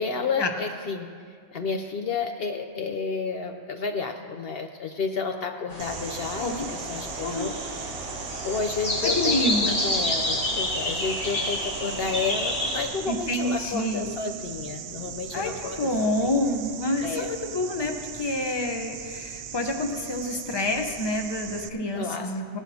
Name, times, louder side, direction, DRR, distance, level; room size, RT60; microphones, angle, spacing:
voice 1, 0.0-7.9 8.4-16.1 17.0-17.3 22.0-22.3, left 4 dB, 60° left, 5 dB, 0.8 m, -31 dB
sound 1, 5.7-12.8, left 1 dB, 80° left, 3.9 m, -29 dB
sound 2, 5.8-21.7, right 8 dB, 75° right, 0.8 m, -39 dB
voice 2, 9.0-9.8 13.1-14.1 15.3-22.6, left 1 dB, 25° left, 4 dB, 0.8 m, -28 dB
18.5 x 12.0 x 2.8 m, 2.1 s
omnidirectional pair, 1.2 m